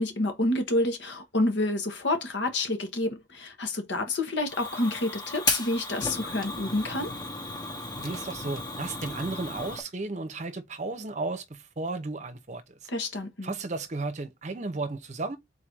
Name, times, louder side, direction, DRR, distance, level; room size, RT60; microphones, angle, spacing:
voice 1, 0.0-7.1 12.9-13.5, left 2 dB, 85° left, 1.2 m, -28 dB
Fire, 4.5-9.8, left 2 dB, 20° left, 0.8 m, -34 dB
voice 2, 8.0-12.8 13.4-15.4, right 3 dB, 40° right, 0.7 m, -34 dB
4.0 x 2.6 x 4.5 m
head